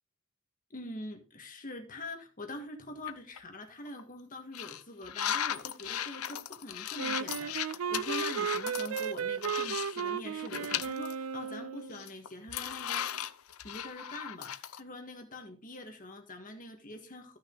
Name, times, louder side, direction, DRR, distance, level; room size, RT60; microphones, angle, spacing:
voice 1, 0.7-13.0 13.6-17.4, left 2 dB, 40° left, 4 dB, 1.7 m, -44 dB
sound 1, 3.1-3.4 3.9-4.0 4.5-10.1 10.4-11.1 11.5-11.6 11.9-14.8, left 10 dB, 85° left, 0.7 m, -37 dB
Wind instrument woodwind instrument, 7.0-12.0, right 7 dB, 75° right, 0.4 m, -35 dB
14.0 x 6.4 x 3.9 m, 0.33 s
head